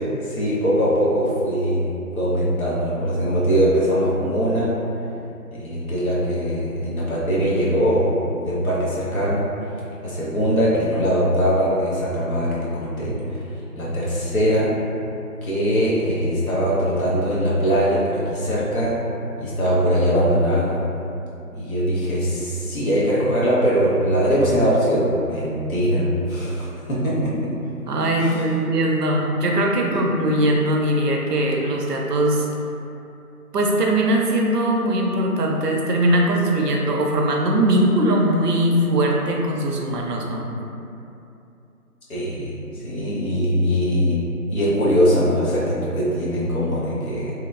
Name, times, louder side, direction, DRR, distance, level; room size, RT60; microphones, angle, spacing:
voice 1, 0.0-1.8 2.2-4.7 5.5-9.5 10.0-14.7 15.4-19.0 19.4-20.8 21.5-27.5 28.2-28.4 29.9-30.0 42.1-44.2 44.5-47.3, equal, 65° left, -7 dB, 0.9 m, -21 dB
voice 2, 27.9-32.5 33.5-40.5, right 1 dB, 85° right, 0 dB, 0.6 m, -20 dB
2.9 x 2.0 x 2.4 m, 2.7 s
figure-of-eight pair, 175°, 46 cm